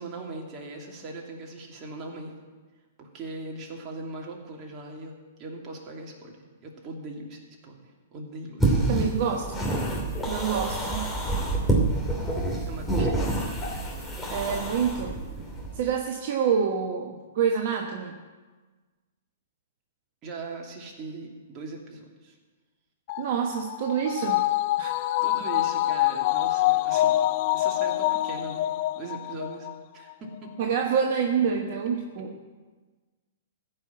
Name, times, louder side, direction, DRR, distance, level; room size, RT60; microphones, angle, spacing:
voice 1, 0.0-2.3 3.0-9.1 12.7-13.5 20.2-22.3 25.2-27.2 27.5-28.7 28.9-29.7 29.9-30.5, right 3 dB, 30° right, -1 dB, 2.8 m, -40 dB
sound 1, 8.6-15.8, right 2 dB, 5° left, 2.8 m, -27 dB
voice 2, 8.9-9.7 10.3-11.1 13.2-13.3 14.3-15.2 15.7-18.2 23.2-24.5 24.8-25.0 30.6-32.4, right 7 dB, 55° right, 3 dB, 1.0 m, -27 dB
sound 2, 23.1-29.7 30.1-30.2, left 15 dB, 45° left, 0.4 m, -26 dB
15.0 x 5.8 x 8.5 m, 1.3 s
hypercardioid pair, 115°, 0 cm